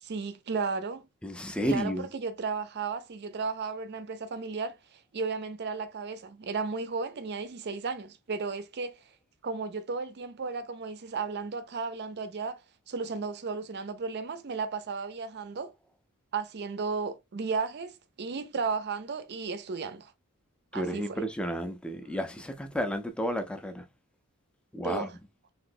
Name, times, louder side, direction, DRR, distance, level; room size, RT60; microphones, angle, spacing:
voice 1, 0.0-1.1 1.7-4.8 5.1-9.0 9.4-15.7 16.3-20.1 20.7-21.2 24.8-25.2, right 4 dB, 50° right, 0.5 m, -34 dB
voice 2, 1.2-2.1 20.7-23.9 24.7-25.1, equal, 5° left, 0.4 m, -32 dB
3.1 x 2.8 x 2.5 m
head